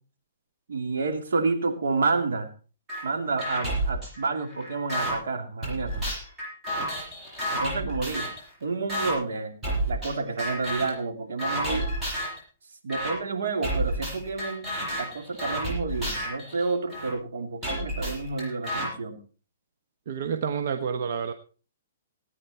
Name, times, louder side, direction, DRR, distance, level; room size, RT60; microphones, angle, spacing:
voice 1, 0.7-2.5 3.0-6.1 7.5-8.3 8.6-9.5 9.9-11.9 12.8-19.2, right 4 dB, 80° right, 5 dB, 3.0 m, -29 dB
sound 1, 2.9-3.0 3.4-5.1 5.6-8.4 8.9-9.1 9.6-10.1 10.4-11.0 11.4-12.4 12.9-13.1 13.6-17.1 17.6-18.9, right 1 dB, 15° right, 7.8 m, -30 dB
voice 2, 20.1-21.3, right 6 dB, 60° right, 8 dB, 1.1 m, -29 dB
18.0 x 9.6 x 4.4 m, 0.38 s
hypercardioid pair, 150°, 0 cm